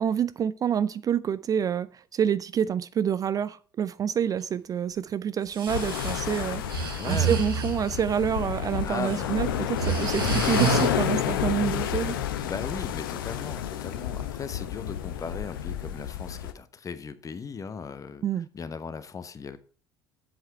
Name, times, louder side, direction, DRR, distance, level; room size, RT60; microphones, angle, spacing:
voice 1, 0.0-12.2 18.2-18.5, right 8 dB, 30° right, 0.4 m, -27 dB
Breathing, 5.4-8.0 8.8-9.2 9.6-10.9, right 6 dB, 75° right, 1.5 m, -29 dB
sound 1, 5.7-16.5, left 10 dB, 70° left, 0.8 m, -30 dB
voice 2, 6.3-6.7 7.0-7.4 8.8-9.5 12.4-18.2 18.5-19.6, left 5 dB, 25° left, 1.0 m, -37 dB
7.9 x 7.8 x 4.3 m
figure-of-eight pair, 60°, 12 cm